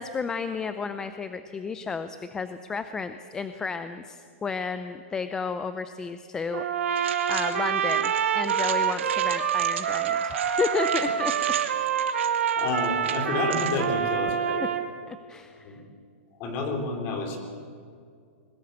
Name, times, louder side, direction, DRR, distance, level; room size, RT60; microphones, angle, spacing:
voice 1, 0.0-6.6 7.3-11.3 15.1-15.8, left 5 dB, 10° left, 10 dB, 0.5 m, -32 dB
Trumpet, 6.5-14.9, right 8 dB, 85° right, 1.8 m, -26 dB
sound 1, 7.0-13.8, right 9 dB, 65° right, 2.2 m, -37 dB
voice 2, 12.5-14.6 15.6-15.8 16.4-17.4, left 3 dB, 30° left, 4 dB, 3.4 m, -29 dB
22.0 x 19.5 x 8.1 m, 2.3 s
supercardioid pair, 170°, 7 cm